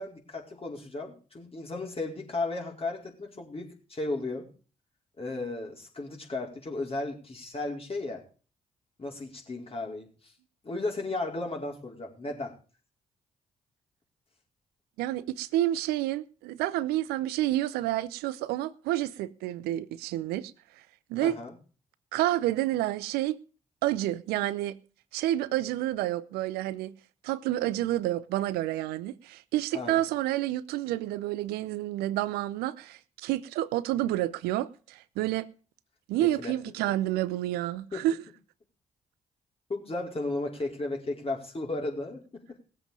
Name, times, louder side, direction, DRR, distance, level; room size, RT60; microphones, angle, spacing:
voice 1, 0.0-4.5 5.2-8.2 9.0-10.3 10.6-12.5 21.2-21.5 29.7-30.0 36.2-36.5 37.9-38.0 39.7-42.6, left 2 dB, 35° left, 4.7 m, -35 dB
voice 2, 15.0-20.5 21.1-21.4 22.1-23.4 23.8-24.8 25.1-26.9 27.2-35.5 36.1-38.2, right 14 dB, 75° right, 0.6 m, -29 dB
18.5 x 7.8 x 5.2 m
hypercardioid pair, 40°, 17 cm